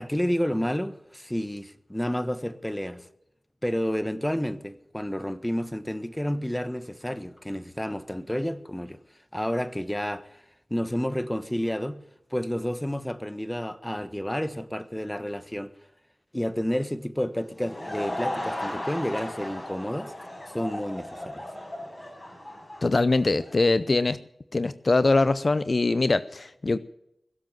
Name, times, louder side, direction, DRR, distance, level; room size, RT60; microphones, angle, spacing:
voice 1, 0.0-3.1 3.6-9.0 9.3-10.4 10.7-12.0 12.3-15.7 16.3-20.1 20.5-21.4, equal, 10° left, 1.2 m, -30 dB
Laughter / Crowd, 17.4-23.7, left 1 dB, 25° left, 5.8 m, -36 dB
voice 2, 22.8-24.2 24.5-26.8, left 3 dB, 55° left, 0.6 m, -22 dB
22.0 x 7.7 x 7.4 m
cardioid pair, 45°, 0 cm